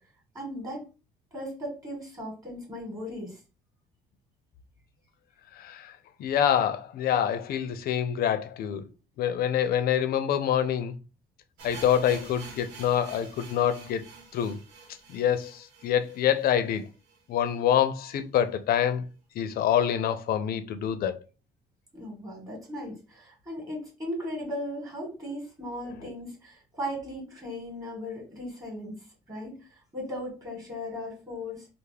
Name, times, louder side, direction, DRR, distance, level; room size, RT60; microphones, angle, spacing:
voice 1, 0.3-0.8 1.3-3.4 21.9-29.7 29.9-31.7, equal, 20° right, 1.9 m, -37 dB
voice 2, 5.6-5.9 6.2-8.9 9.2-10.9 11.6-14.0 14.3-14.6 15.1-16.8 17.3-19.0 19.4-21.2, left 9 dB, 60° left, 0.5 m, -26 dB
sound 1, 11.6-17.5 17.8-17.9 18.1-18.2 18.8-18.9, right 4 dB, 85° right, 1.0 m, -47 dB
3.3 x 2.0 x 3.4 m
cardioid pair, 110°, 17 cm